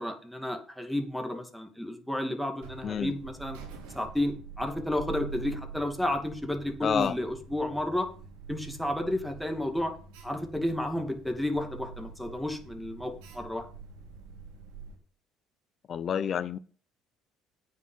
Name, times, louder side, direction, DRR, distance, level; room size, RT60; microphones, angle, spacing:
voice 1, 0.0-3.6 3.9-8.1 8.5-9.9 10.2-13.6, left 1 dB, ahead, 2.5 m, -32 dB
Alarm, 2.6-15.0, right 5 dB, 85° right, 2.9 m, -46 dB
voice 2, 6.8-7.2 15.9-16.6, left 8 dB, 45° left, 0.7 m, -29 dB
9.2 x 5.8 x 7.9 m
supercardioid pair, 80°, 0 cm